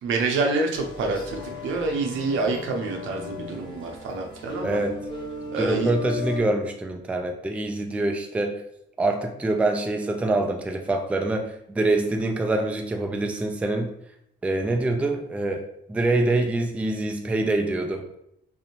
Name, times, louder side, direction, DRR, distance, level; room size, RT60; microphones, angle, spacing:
voice 1, 0.0-4.8 5.5-5.9, right 3 dB, 75° right, 2 dB, 0.6 m, -27 dB
sound 1, 0.7-6.4, left 3 dB, 25° left, 0.8 m, -37 dB
voice 2, 4.6-5.0 5.6-8.6 9.0-13.9 14.4-18.1, right 2 dB, 5° right, 4 dB, 0.3 m, -25 dB
2.6 x 2.1 x 2.9 m, 0.76 s
cardioid pair, 90°, 20 cm